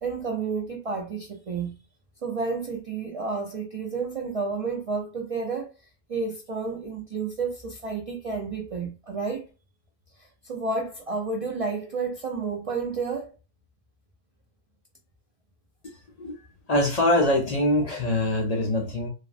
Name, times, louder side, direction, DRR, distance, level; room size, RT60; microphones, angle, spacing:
voice 1, 0.0-1.8 2.2-5.7 6.1-9.5 10.2-13.3, right 4 dB, 50° right, 0.4 m, -31 dB
voice 2, 16.7-19.1, left 1 dB, 50° left, 0.5 m, -23 dB
3.4 x 2.0 x 2.4 m
omnidirectional pair, 1.1 m